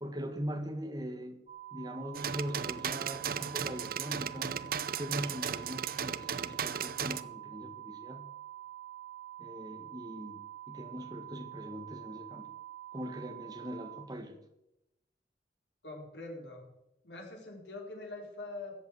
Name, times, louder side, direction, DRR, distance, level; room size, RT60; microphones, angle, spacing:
voice 1, 0.0-1.4 1.7-4.6 5.0-8.3 9.4-10.4 10.7-12.5 12.9-14.4, equal, 25° right, 5 dB, 1.8 m, -41 dB
sound 1, 1.5-14.0, right 13 dB, 40° right, 1.7 m, -47 dB
sound 2, 2.1-7.2, right 7 dB, 55° right, 0.6 m, -36 dB
voice 2, 15.8-16.7 17.0-18.8, left 2 dB, 85° left, 0 dB, 4.5 m, -44 dB
14.5 x 8.3 x 7.7 m, 0.86 s
head